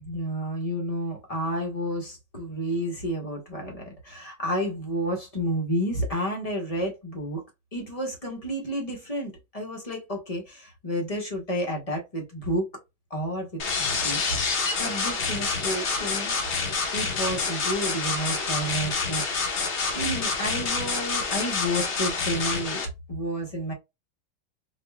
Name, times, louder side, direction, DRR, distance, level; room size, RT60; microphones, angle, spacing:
voice 1, 0.0-7.4 7.7-12.7 13.1-14.4 14.8-16.3 16.9-19.2 19.5-22.8 23.1-23.7, equal, 30° left, 0.8 m, -31 dB
sound 1, 13.6-22.8, left 4 dB, 50° left, 0.9 m, -27 dB
4.3 x 2.5 x 2.2 m
omnidirectional pair, 1.9 m